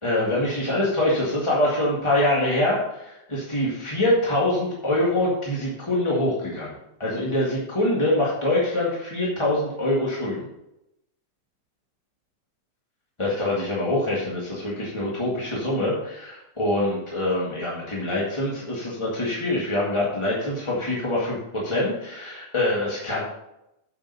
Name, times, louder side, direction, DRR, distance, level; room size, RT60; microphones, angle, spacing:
voice 1, 0.0-6.7 7.0-10.4 13.2-23.3, left 1 dB, 15° left, -5 dB, 1.2 m, -24 dB
8.0 x 6.6 x 5.5 m, 0.86 s
omnidirectional pair, 3.3 m